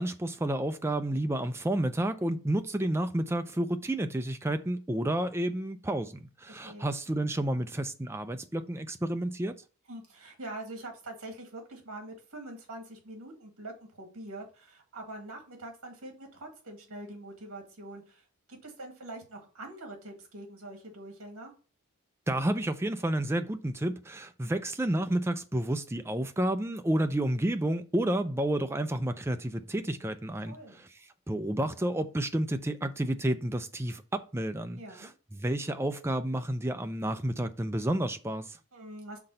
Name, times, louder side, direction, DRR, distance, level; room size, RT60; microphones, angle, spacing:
voice 1, 0.0-9.6 22.3-30.9 31.3-38.6, right 1 dB, 10° right, 0.4 m, -30 dB
voice 2, 6.5-6.9 9.9-21.5 30.5-30.8 34.8-35.1 38.7-39.2, right 1 dB, 70° right, 2.0 m, -44 dB
5.9 x 3.8 x 5.5 m
head